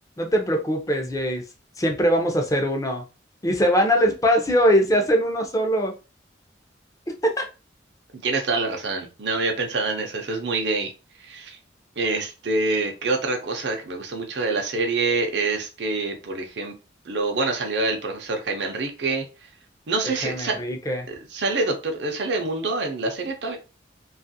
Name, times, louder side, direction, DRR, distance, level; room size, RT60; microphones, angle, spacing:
voice 1, 0.2-1.4 1.8-3.0 3.4-5.9 7.2-7.4 20.0-21.1, equal, 20° left, 3 dB, 0.5 m, -22 dB
voice 2, 8.2-10.9 11.2-11.6 12.0-16.7 17.1-19.2 19.9-20.6 21.1-23.6, right 3 dB, 65° right, 3 dB, 0.6 m, -26 dB
2.9 x 2.4 x 2.7 m, 0.31 s
head